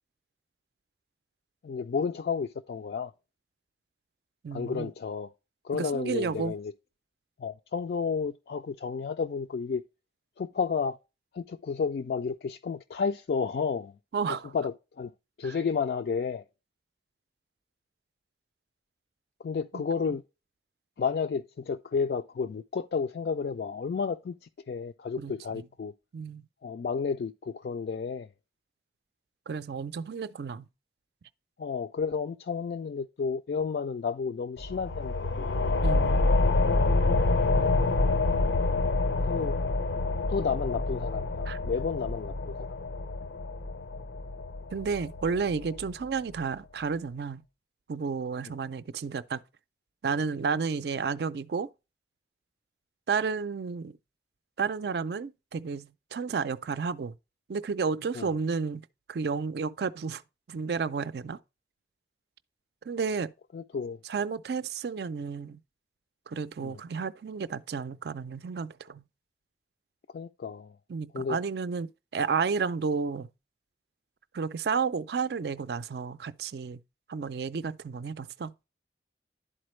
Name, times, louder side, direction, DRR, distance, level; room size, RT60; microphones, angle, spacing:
voice 1, 1.6-3.1 4.5-5.3 5.6-6.7 7.4-9.8 10.4-11.0 11.3-13.9 14.3-15.1 15.4-16.4 19.4-20.2 21.0-24.3 24.7-25.9 26.6-28.3 31.6-35.7 39.2-39.6 40.3-42.5 58.1-58.3 63.5-64.0 66.6-66.8 70.1-70.8 71.1-71.4, left 5 dB, 60° left, 0.3 m, -31 dB
voice 2, 4.4-4.9 5.7-6.5 14.1-14.5 15.4-15.5 19.7-19.8 25.2-25.6 26.1-26.5 29.5-30.7 35.8-36.3 37.5-38.3 41.5-41.6 44.7-47.4 47.9-49.4 50.0-51.7 53.1-54.0 54.6-57.1 57.5-60.2 60.5-61.4 62.9-63.3 64.0-65.6 66.3-69.0 70.9-73.3 74.3-76.8 77.1-78.5, right 5 dB, 65° right, 0.4 m, -32 dB
sound 1, 34.6-45.8, left 2 dB, 85° left, 0.7 m, -27 dB
11.0 x 4.3 x 3.1 m
head